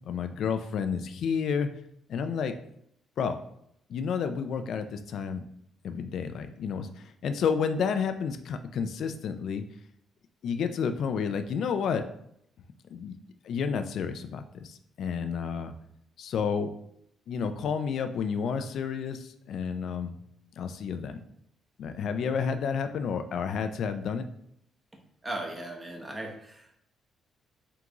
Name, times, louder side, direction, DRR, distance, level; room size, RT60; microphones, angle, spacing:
voice 1, 0.1-1.7 2.1-2.5 3.2-3.4 3.9-5.4 5.8-9.6 10.4-12.1 12.9-13.1 13.4-15.7 16.2-16.7 17.3-20.1 20.6-21.2 21.8-24.3, left 6 dB, 70° left, 8 dB, 0.3 m, -30 dB
voice 2, 25.2-26.8, right 1 dB, 20° right, 2 dB, 0.9 m, -37 dB
3.7 x 3.4 x 3.0 m, 0.72 s
cardioid pair, 90°, 0 cm